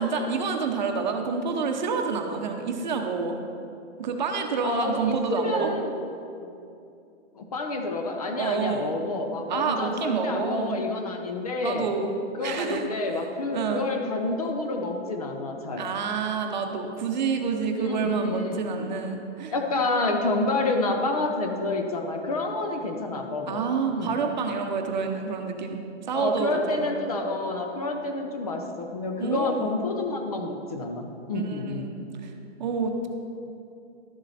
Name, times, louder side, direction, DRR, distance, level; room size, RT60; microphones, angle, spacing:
voice 1, 0.0-3.3 4.0-5.7 8.4-8.9 9.5-10.8 11.6-12.1 12.4-13.2 13.5-13.9 15.8-19.5 23.5-25.8 26.1-26.9 29.2-29.7 31.3-32.3 32.6-33.1, right 5 dB, 40° right, 4 dB, 0.8 m, -28 dB
voice 2, 4.6-6.0 7.3-11.9 12.4-15.9 17.8-18.9 19.5-23.6 23.9-24.2 26.1-31.9, left 2 dB, 30° left, 3 dB, 0.6 m, -29 dB
12.0 x 7.4 x 4.1 m, 2.6 s
hypercardioid pair, 180°, 35 cm